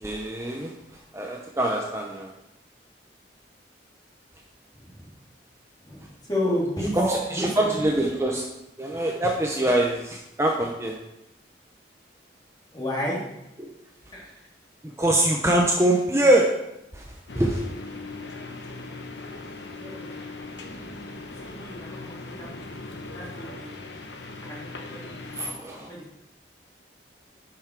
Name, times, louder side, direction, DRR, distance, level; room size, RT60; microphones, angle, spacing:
voice 1, 0.0-0.7 1.1-2.3 6.9-8.5 8.8-10.9 13.6-13.7 14.8-16.5 16.9-17.6 25.3-25.9, right 1 dB, 15° right, 0 dB, 0.7 m, -24 dB
voice 2, 5.8-6.9 7.3-7.9 12.7-13.2 14.1-14.2 19.7-20.1 21.4-23.7 24.4-25.3 25.9-26.2, left 1 dB, 25° left, -5 dB, 2.7 m, -32 dB
sound 1, 17.3-25.5, left 2 dB, 75° left, 1.1 m, -39 dB
10.5 x 5.9 x 4.6 m, 0.88 s
head